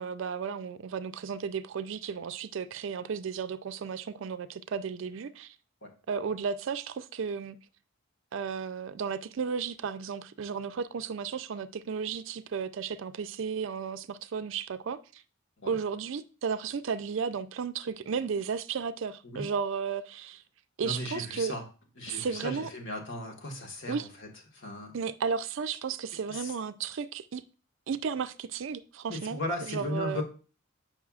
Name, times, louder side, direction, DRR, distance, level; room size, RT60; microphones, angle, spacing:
voice 1, 0.0-5.5 6.1-7.6 8.3-15.2 15.7-20.4 20.8-21.5 22.1-22.7 23.9-24.1 24.9-27.4 27.9-29.4 29.7-30.2, right 6 dB, 65° right, 0.4 m, -34 dB
voice 2, 20.8-21.6 22.0-24.9 26.3-26.5 29.1-30.2, left 1 dB, 60° left, 1.5 m, -36 dB
7.1 x 5.5 x 2.4 m
head